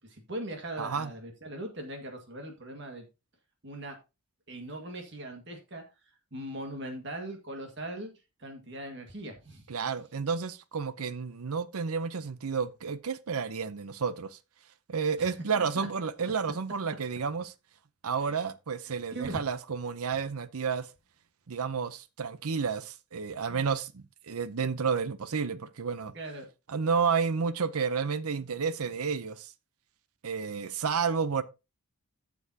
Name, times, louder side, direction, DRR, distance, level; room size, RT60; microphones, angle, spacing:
voice 1, 0.0-3.1 3.6-4.0 4.5-5.8 6.3-8.1 8.4-9.7 15.2-16.1 18.2-18.4 18.9-19.4 23.5-23.7 26.1-26.5, right 1 dB, 55° right, 1.8 m, -40 dB
voice 2, 0.8-1.1 9.7-14.4 14.9-17.5 18.0-20.9 21.5-26.1 26.7-29.5 30.2-31.4, right 5 dB, 85° right, 0.7 m, -31 dB
12.5 x 7.1 x 2.8 m
head